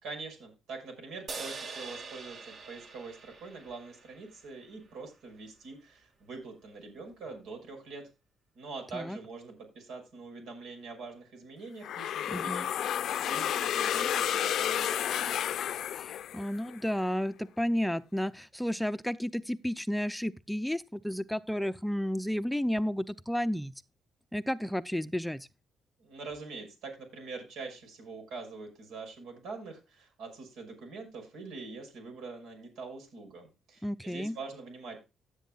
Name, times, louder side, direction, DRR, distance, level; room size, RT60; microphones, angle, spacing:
voice 1, 0.0-8.1 8.6-15.3 26.0-35.0, right 4 dB, 85° right, 6.0 m, -44 dB
sound 1, 1.3-4.8, right 4 dB, 50° right, 2.5 m, -44 dB
sound 2, 11.8-16.7, left 10 dB, 70° left, 0.5 m, -31 dB
voice 2, 12.3-12.7 15.9-23.7 24.3-25.5 33.8-34.4, equal, ahead, 0.5 m, -32 dB
16.0 x 8.3 x 2.4 m
cardioid pair, 90°, 0 cm